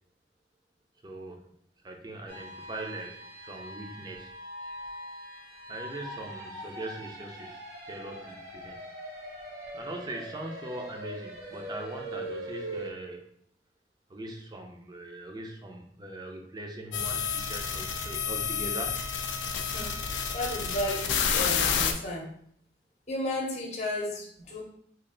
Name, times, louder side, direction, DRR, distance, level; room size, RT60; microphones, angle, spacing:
voice 1, 1.0-1.5 1.8-4.3 5.7-7.6 7.9-8.8 9.7-13.3 14.1-18.9, right 1 dB, 25° right, 2 dB, 0.5 m, -41 dB
sound 1, 2.3-12.9, right 1 dB, 60° right, 0.8 m, -42 dB
sound 2, 16.9-21.9, left 7 dB, 90° left, 0.4 m, -29 dB
voice 2, 20.3-21.1 21.3-22.3 23.1-24.6, left 1 dB, 40° left, -1 dB, 0.8 m, -33 dB
3.2 x 2.5 x 3.8 m, 0.67 s
head